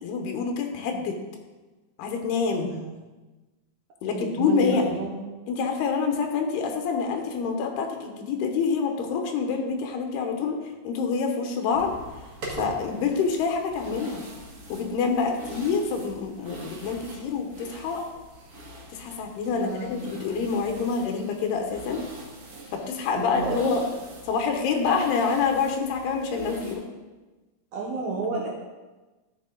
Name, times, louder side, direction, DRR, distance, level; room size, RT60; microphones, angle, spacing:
voice 1, 0.0-1.2 2.0-2.7 4.0-4.9 5.5-10.6 10.8-12.0 12.5-14.2 14.7-18.1 18.9-22.0 22.7-23.8 24.3-26.8, left 5 dB, 85° left, 3 dB, 3.0 m, -27 dB
voice 2, 2.6-2.9 4.1-5.2 19.6-19.9 23.1-23.8 27.7-28.5, right 3 dB, 65° right, -3 dB, 1.9 m, -31 dB
sound 1, 11.7-26.7, right 1 dB, 45° right, 2.4 m, -42 dB
12.5 x 6.5 x 3.9 m, 1.2 s
omnidirectional pair, 4.5 m